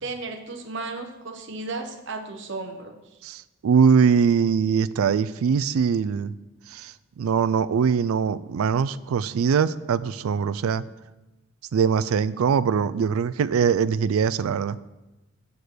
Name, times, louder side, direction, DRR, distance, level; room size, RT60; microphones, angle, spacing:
voice 1, 0.0-3.0, right 3 dB, 55° right, 4 dB, 0.9 m, -34 dB
voice 2, 3.2-6.3 6.7-10.8 11.7-14.8, right 6 dB, 85° right, 17 dB, 0.3 m, -22 dB
8.1 x 5.1 x 6.0 m, 1.0 s
head